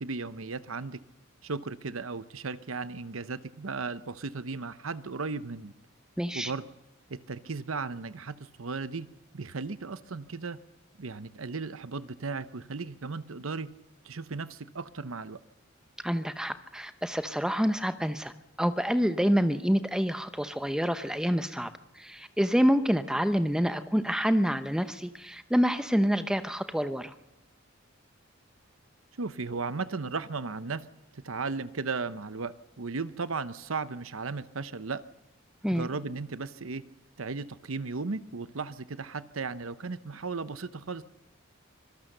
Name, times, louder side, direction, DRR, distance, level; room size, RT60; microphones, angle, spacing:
voice 1, 0.0-1.0 1.4-5.7 6.3-6.6 7.1-9.1 9.3-10.6 11.0-13.7 14.0-15.4 29.2-30.8 31.1-35.0 35.7-36.8 37.2-41.0, right 4 dB, 80° right, 14 dB, 0.9 m, -36 dB
voice 2, 6.2-6.5 16.0-18.3 18.6-27.1 35.6-35.9, equal, 5° right, 10 dB, 0.8 m, -27 dB
25.0 x 17.5 x 6.7 m, 0.97 s
head